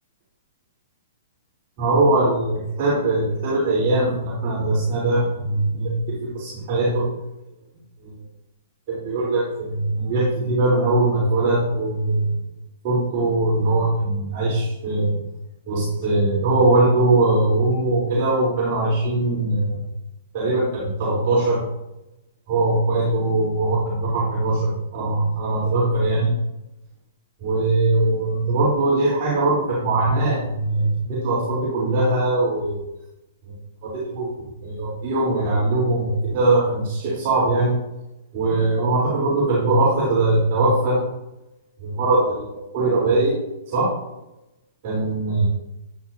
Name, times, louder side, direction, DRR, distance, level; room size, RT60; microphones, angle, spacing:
voice 1, 1.8-6.0 6.2-7.1 8.0-8.1 8.9-12.4 12.8-15.2 15.7-19.9 20.3-21.6 22.5-26.3 27.4-32.8 33.4-33.5 33.8-37.8 38.3-41.0 41.8-43.4 43.7-44.0 44.8-45.5, right 2 dB, 40° right, -6 dB, 3.5 m, -21 dB
12.0 x 10.5 x 2.7 m, 0.93 s
figure-of-eight pair, 110°, 0 cm